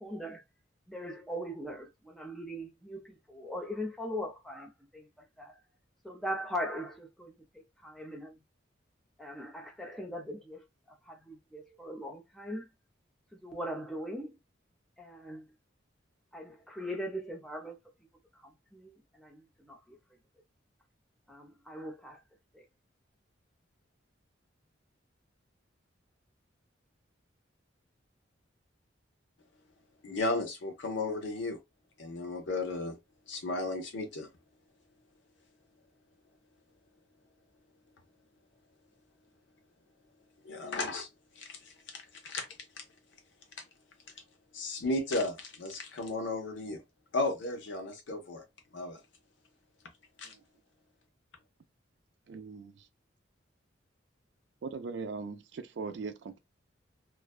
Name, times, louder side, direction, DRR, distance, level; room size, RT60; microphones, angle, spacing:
voice 1, 0.0-0.4 0.9-5.1 5.4-5.5 6.0-7.3 7.8-8.4 9.2-10.6 11.1-12.7 13.3-14.4 15.0-15.5 16.3-17.8 18.4-20.0 21.3-22.2 22.5-22.6, equal, ahead, 0.5 m, -40 dB
voice 2, 30.0-31.6 32.0-33.0 33.3-34.3 40.4-41.1 41.4-41.6 41.9-42.5 42.8-42.9 43.6-43.7 44.5-46.8 47.1-48.4 48.7-49.0 50.2-50.3, left 2 dB, 70° left, 0.7 m, -34 dB
voice 3, 52.3-52.9 54.6-56.4, right 4 dB, 65° right, 0.4 m, -40 dB
2.5 x 2.2 x 2.3 m
head